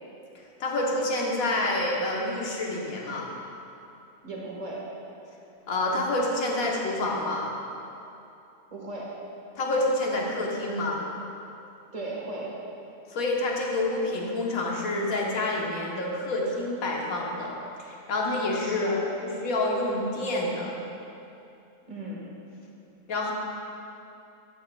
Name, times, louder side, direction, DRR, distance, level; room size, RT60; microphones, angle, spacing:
voice 1, 0.6-3.3 5.7-7.5 9.5-11.0 13.1-17.5 17.8-20.7 23.1-23.3, left 2 dB, 70° left, -2 dB, 1.5 m, -28 dB
voice 2, 4.2-4.8 8.7-9.1 11.9-12.5 18.6-18.9 21.9-22.2, right 2 dB, 25° right, -4 dB, 1.5 m, -36 dB
12.5 x 8.3 x 2.3 m, 2.8 s
omnidirectional pair, 1.6 m